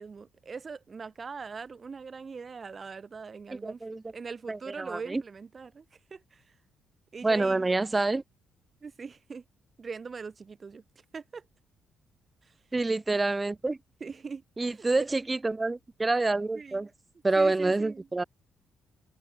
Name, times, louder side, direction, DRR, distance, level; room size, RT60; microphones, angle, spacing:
voice 1, 0.0-3.8 4.1-5.8 6.1-6.4 7.1-7.7 8.8-9.4 9.8-10.8 11.1-11.4 12.5-12.6 14.0-15.1 16.5-16.9 17.3-18.1, right 5 dB, 35° right, 1.4 m, -41 dB
voice 2, 3.6-4.0 4.5-5.2 7.2-8.2 12.7-13.8 14.6-16.9 17.2-18.2, right 3 dB, 20° right, 0.4 m, -27 dB
cardioid pair, 90°, 0 cm